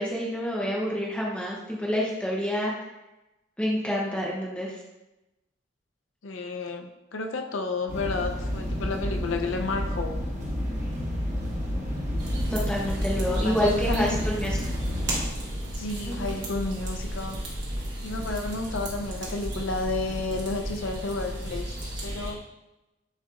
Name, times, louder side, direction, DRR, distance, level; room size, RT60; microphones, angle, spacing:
voice 1, 0.0-2.7 3.6-4.7 12.5-14.6 16.1-16.3, equal, 5° left, -4 dB, 0.6 m, -28 dB
voice 2, 6.2-10.1 13.3-14.2 15.7-17.4 18.0-21.7 22.0-22.4, left 3 dB, 75° left, 5 dB, 0.5 m, -31 dB
sound 1, 7.9-15.3, equal, 40° right, 1.4 m, -30 dB
sound 2, 12.2-22.3, right 1 dB, 65° right, 1.2 m, -34 dB
7.4 x 2.9 x 2.4 m, 0.99 s
head